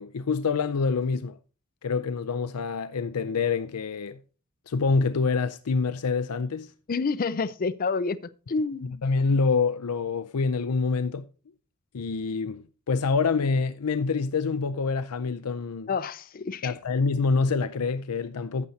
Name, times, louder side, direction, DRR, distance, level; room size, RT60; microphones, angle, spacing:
voice 1, 0.0-1.4 1.8-4.2 4.7-6.7 9.0-11.3 11.9-15.9 16.6-18.7, left 4 dB, 90° left, 0.5 m, -26 dB
voice 2, 6.9-8.2 8.5-9.0 15.9-16.7, left 4 dB, 40° left, 0.4 m, -28 dB
12.0 x 8.2 x 2.8 m
head